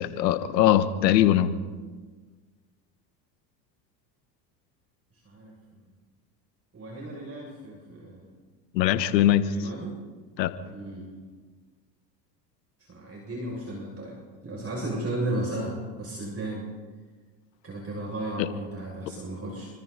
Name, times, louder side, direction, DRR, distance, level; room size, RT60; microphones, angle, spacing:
voice 1, 0.0-1.5 8.7-9.5 10.4-10.5 18.4-18.5, left 12 dB, 80° left, 11 dB, 1.5 m, -21 dB
voice 2, 5.3-5.9 6.7-8.2 9.5-10.0 10.7-11.1 12.9-14.2 14.4-16.6 17.6-19.7, right 1 dB, 30° right, -2 dB, 7.1 m, -34 dB
29.5 x 24.5 x 4.2 m, 1.4 s
hypercardioid pair, 85°, 50 cm